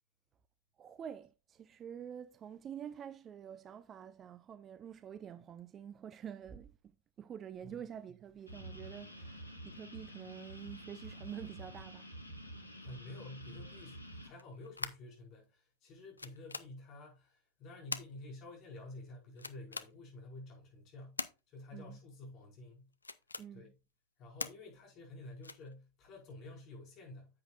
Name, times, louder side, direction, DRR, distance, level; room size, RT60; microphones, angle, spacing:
voice 1, 0.8-12.1 21.7-22.0 23.4-23.7, right 8 dB, 25° right, 0.5 m, -48 dB
sound 1, 8.5-14.3, right 1 dB, 90° right, 2.1 m, -49 dB
voice 2, 12.8-21.2 21.5-22.9 23.5-23.7 24.2-27.3, left 2 dB, 35° left, 5.1 m, -50 dB
sound 2, 14.4-15.2 15.9-16.0 16.2-16.7 17.9-18.1 19.4-19.9 21.2-21.3 22.9-23.5 24.4-24.5 25.4-25.7, left 4 dB, 80° left, 0.5 m, -41 dB
9.7 x 8.1 x 2.4 m
figure-of-eight pair, 90°, 0 cm